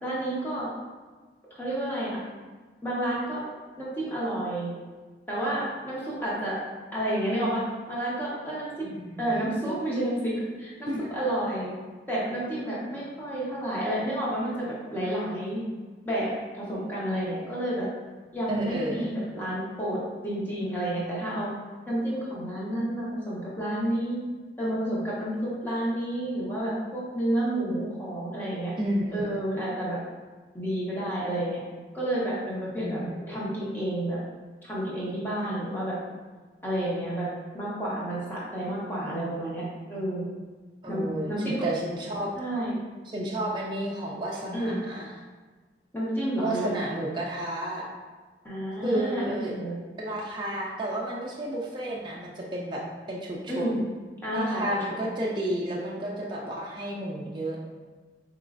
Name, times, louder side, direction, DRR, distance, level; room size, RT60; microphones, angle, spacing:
voice 1, 0.0-0.7 1.6-2.2 2.8-3.4 3.8-4.7 5.3-6.6 6.9-8.9 9.2-11.7 12.1-15.6 16.0-17.9 18.3-21.5 21.9-24.2 24.6-28.7 29.1-30.0 30.5-31.6 31.9-33.0 33.3-34.2 34.6-36.0 36.6-37.3 37.5-39.6 39.9-40.3 40.9-41.7 42.4-42.7 44.5-44.8 45.9-46.8 48.4-49.7 53.5-53.9 54.2-54.8, right 1 dB, 10° left, -7 dB, 0.9 m, -30 dB
voice 2, 8.8-9.5 10.8-11.0 18.5-19.1 28.8-29.4 32.8-33.4 40.8-42.3 43.1-45.1 46.4-47.8 48.8-49.5 50.0-53.7 54.3-57.6, right 1 dB, 25° right, -4 dB, 0.4 m, -32 dB
4.3 x 3.0 x 2.5 m, 1.4 s
head